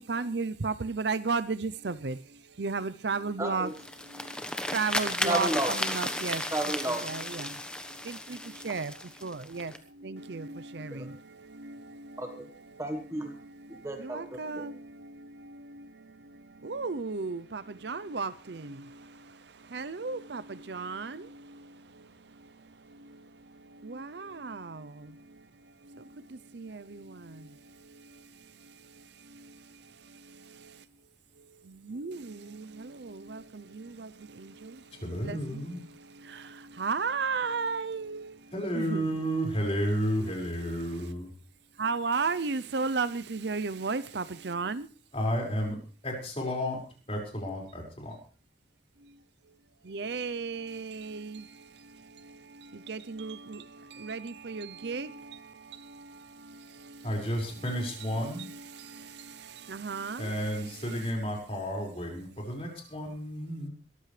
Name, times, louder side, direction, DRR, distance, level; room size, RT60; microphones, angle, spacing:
voice 1, 0.1-2.1 2.6-3.7 4.7-6.4 7.0-7.5 8.6-8.9 9.2-9.7 10.0-10.5 10.7-10.9 14.1-14.7 16.6-18.6 19.7-20.4 20.7-21.2 23.9-24.6 31.9-32.2 33.3-33.4 35.3-35.4 36.8-38.3 38.8-39.1 41.8-44.8 49.9-51.3 52.9-53.4 54.0-55.1 59.7-60.2, right 4 dB, 65° right, 0.6 m, -32 dB
voice 2, 3.4-3.7 5.2-5.7 6.5-7.0 10.9-11.1 12.2-12.5 12.8-13.3 13.8-14.7, right 1 dB, 15° right, 1.4 m, -32 dB
sound 1, 3.7-9.8, left 1 dB, 5° left, 1.2 m, -34 dB
voice 3, 35.0-35.8 38.5-41.3 45.1-45.8 46.0-46.8 47.1-48.2 57.0-58.5 60.2-63.7, equal, 30° left, 5.4 m, -32 dB
22.0 x 14.0 x 3.3 m
head